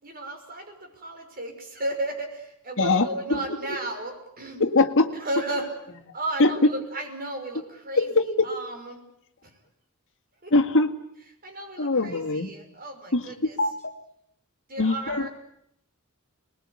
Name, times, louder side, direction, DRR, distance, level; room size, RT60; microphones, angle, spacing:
voice 1, 0.0-4.6 5.2-5.7 6.1-8.1 8.4-9.0 9.4-9.6 10.4-10.5 11.4-13.6 14.7-15.3, right 1 dB, 40° right, 3 dB, 5.9 m, -34 dB
voice 2, 2.8-3.4 3.7-3.8 4.6-5.1 6.4-6.5 8.0-8.5 10.5-10.9 11.8-12.5 13.1-13.2 13.6-13.9 14.8-15.3, left 3 dB, 60° left, 6 dB, 2.1 m, -22 dB
27.0 x 21.0 x 9.8 m, 0.75 s
head